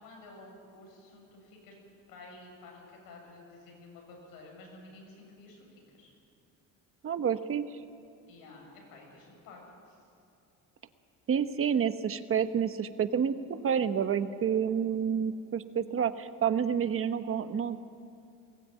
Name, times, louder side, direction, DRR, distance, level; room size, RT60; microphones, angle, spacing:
voice 1, 0.0-1.8 2.1-5.7 5.9-6.1 8.3-9.6 9.9-10.0, left 2 dB, 85° left, 0 dB, 7.6 m, -51 dB
voice 2, 7.0-7.7 11.3-17.8, right 7 dB, 40° right, 10 dB, 1.2 m, -29 dB
21.0 x 17.0 x 9.2 m, 2.7 s
cardioid pair, 110°, 34 cm